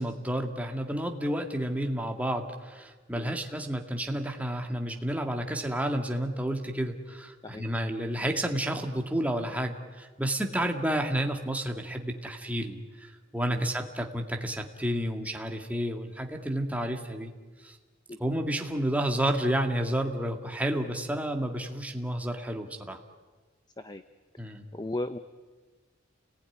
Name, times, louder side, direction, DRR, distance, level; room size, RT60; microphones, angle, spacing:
voice 1, 0.0-17.3 17.6-17.8 18.2-23.0 24.4-24.6, right 1 dB, 5° right, 3 dB, 2.2 m, -31 dB
voice 2, 24.7-25.2, left 2 dB, 20° left, 10 dB, 0.8 m, -36 dB
29.5 x 19.5 x 10.0 m, 1.4 s
head